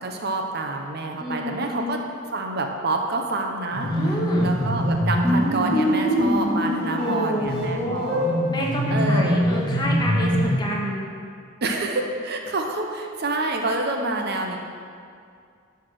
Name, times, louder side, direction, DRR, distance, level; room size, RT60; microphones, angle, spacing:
voice 1, 0.0-2.0 2.3-3.9 4.4-8.3 8.9-9.4 11.6-14.6, right 2 dB, 55° right, 3 dB, 0.9 m, -27 dB
voice 2, 1.2-1.9 3.9-4.5 6.8-8.2 8.5-11.1, equal, 20° left, -2 dB, 1.4 m, -28 dB
sound 1, 3.7-10.6, equal, 5° left, 2.6 m, -23 dB
11.5 x 4.8 x 6.4 m, 2.3 s
head